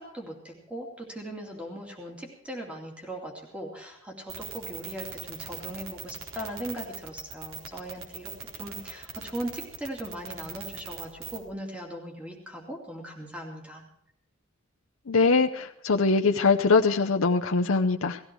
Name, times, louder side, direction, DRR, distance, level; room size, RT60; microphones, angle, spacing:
voice 1, 0.0-13.8, right 1 dB, 5° right, 0 dB, 2.6 m, -39 dB
sound 1, 4.3-11.4, right 5 dB, 65° right, 4.1 m, -39 dB
voice 2, 15.1-18.2, left 4 dB, 75° left, 4 dB, 0.7 m, -22 dB
18.5 x 15.0 x 4.6 m, 0.73 s
head